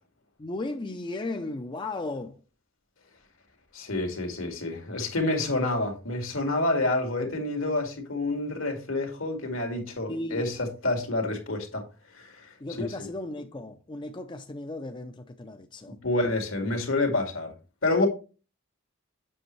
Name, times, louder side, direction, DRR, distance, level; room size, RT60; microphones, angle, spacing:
voice 1, 0.4-2.4 10.1-10.5 12.6-16.0, left 2 dB, 25° left, 0.5 m, -35 dB
voice 2, 3.7-11.8 12.1-12.5 16.0-17.5 17.8-18.1, left 2 dB, 80° left, 2.0 m, -28 dB
7.7 x 6.0 x 3.1 m
head